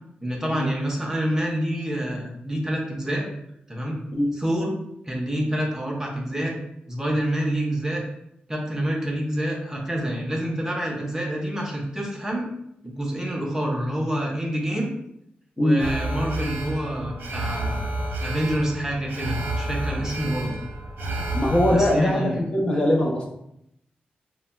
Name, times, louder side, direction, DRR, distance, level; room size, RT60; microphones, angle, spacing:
voice 1, 0.2-3.3 3.7-4.0 4.3-4.7 5.1-6.5 6.9-8.0 8.5-12.5 12.8-14.9 15.6-17.9 18.2-20.5 21.7-22.4, right 1 dB, 15° right, -1 dB, 0.7 m, -27 dB
Alarm, 15.8-21.9, right 1 dB, 75° right, 0.7 m, -30 dB
voice 2, 21.3-23.3, left 1 dB, 35° left, -1 dB, 0.6 m, -21 dB
4.0 x 2.1 x 2.3 m, 0.78 s
cardioid pair, 80°, 3 cm